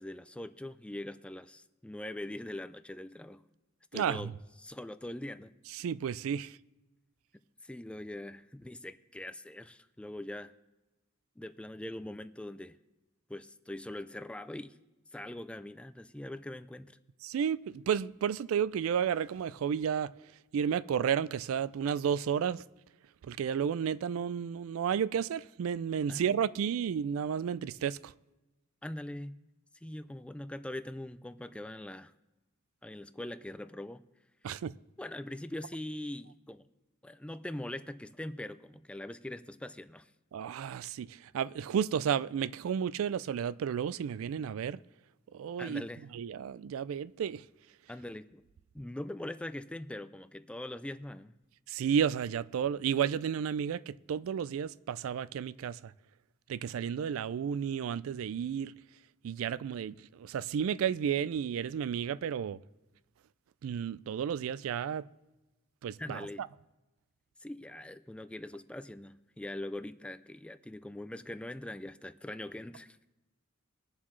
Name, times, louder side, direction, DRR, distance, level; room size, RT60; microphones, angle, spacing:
voice 1, 0.0-3.4 3.9-4.3 4.6-5.5 7.6-10.5 11.4-12.8 13.3-14.8 15.1-17.0 26.1-26.2 28.8-29.3 29.8-32.1 32.8-34.0 35.0-36.6 37.0-40.1 45.6-46.0 47.9-48.4 48.7-51.3 66.0-66.4 67.4-73.1, left 1 dB, 5° left, 0.3 m, -42 dB
voice 2, 3.9-4.3 5.7-6.6 17.2-20.1 20.5-22.6 23.2-28.1 34.4-34.7 40.3-44.8 45.3-45.8 46.1-47.4 51.7-55.9 56.5-58.7 59.2-62.6 63.6-65.1 65.8-66.3, right 8 dB, 75° right, 0.3 m, -32 dB
22.0 x 7.3 x 3.2 m
head